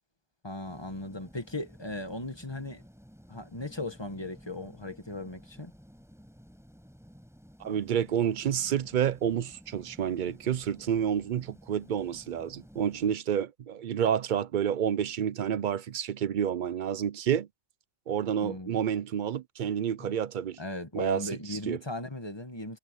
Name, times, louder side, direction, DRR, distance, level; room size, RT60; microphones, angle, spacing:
voice 1, 0.4-2.8 3.3-5.7 18.4-18.7 20.0-20.1 20.6-22.8, left 2 dB, 25° left, 1.6 m, -37 dB
sound 1, 0.6-13.1, equal, 5° right, 6.3 m, -54 dB
voice 2, 7.6-17.5 18.1-20.6 20.9-21.8, right 9 dB, 55° right, 0.7 m, -29 dB
omnidirectional pair, 1.0 m